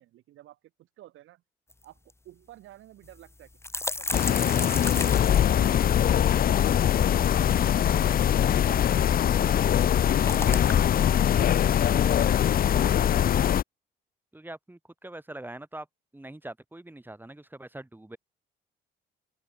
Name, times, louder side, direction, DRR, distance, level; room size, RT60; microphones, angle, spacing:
voice 1, 0.0-1.4 1.8-3.5 4.0-7.2 8.5-10.3, right 14 dB, 85° right, 3.9 m, -52 dB
sound 1, 1.7-1.8 2.1-2.2 3.0-6.2 7.2-8.3 9.6-11.0, left 2 dB, 15° left, 1.3 m, -34 dB
sound 2, 4.1-13.6, left 10 dB, 45° left, 0.5 m, -22 dB
voice 2, 14.3-15.9 16.1-18.2, right 1 dB, 10° right, 6.1 m, -43 dB
open air
cardioid pair, 90°, 20 cm